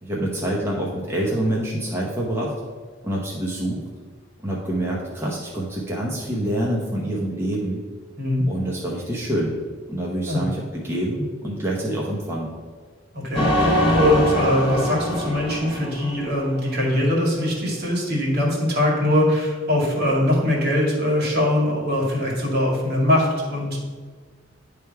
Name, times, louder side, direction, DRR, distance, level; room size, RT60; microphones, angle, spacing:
voice 1, 0.0-2.5 3.0-3.8 4.4-7.8 8.5-9.5 9.9-12.5, right 1 dB, 10° right, -4 dB, 0.9 m, -26 dB
voice 2, 13.1-23.8, left 1 dB, 55° right, -3 dB, 2.1 m, -22 dB
sound 1, 13.3-16.8, equal, 25° left, 1.4 m, -23 dB
9.8 x 3.4 x 4.6 m, 1.5 s
head